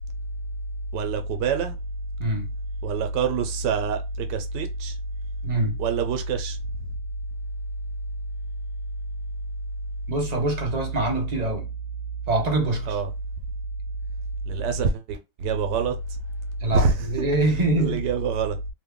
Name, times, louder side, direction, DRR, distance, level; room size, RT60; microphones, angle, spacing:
voice 1, 0.9-1.8 2.8-5.0 5.8-6.6 12.9-13.1 14.5-16.2 16.7-17.3 17.8-18.6, right 5 dB, 85° right, 1.2 m, -26 dB
voice 2, 5.4-5.8 10.1-11.7 12.3-13.0 16.6-18.0, right 2 dB, 35° right, 0.7 m, -24 dB
3.0 x 2.2 x 3.5 m
omnidirectional pair, 1.8 m